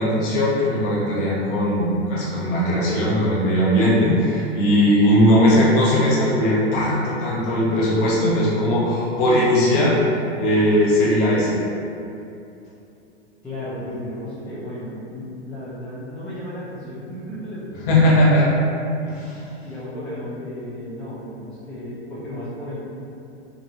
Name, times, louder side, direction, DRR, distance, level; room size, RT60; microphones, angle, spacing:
voice 1, 0.0-10.0 10.4-11.5 17.9-18.5 19.0-19.4, equal, 50° left, -6 dB, 1.0 m, -19 dB
voice 2, 13.4-17.9 19.0-19.2 19.6-22.8, left 1 dB, 5° left, -12 dB, 0.3 m, -34 dB
3.1 x 2.6 x 2.5 m, 2.7 s
figure-of-eight pair, 95°, 34 cm